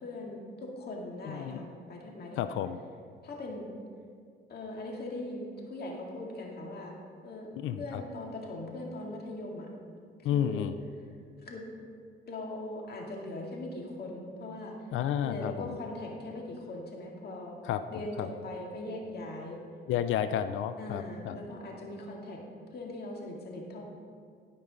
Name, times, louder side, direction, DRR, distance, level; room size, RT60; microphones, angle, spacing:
voice 1, 0.0-2.6 3.2-3.7 4.5-6.9 7.2-7.5 7.8-9.7 10.3-10.7 11.4-11.6 12.3-14.9 15.2-17.6 17.9-19.6 20.8-22.4 22.7-23.8, left 1 dB, 55° left, -1 dB, 2.0 m, -40 dB
voice 2, 1.2-1.6 2.4-2.8 7.6-8.0 10.2-10.8 14.9-15.8 17.6-18.3 19.9-21.4, left 10 dB, 80° left, 11 dB, 0.4 m, -31 dB
12.5 x 5.3 x 5.1 m, 2.2 s
cardioid pair, 90°, 20 cm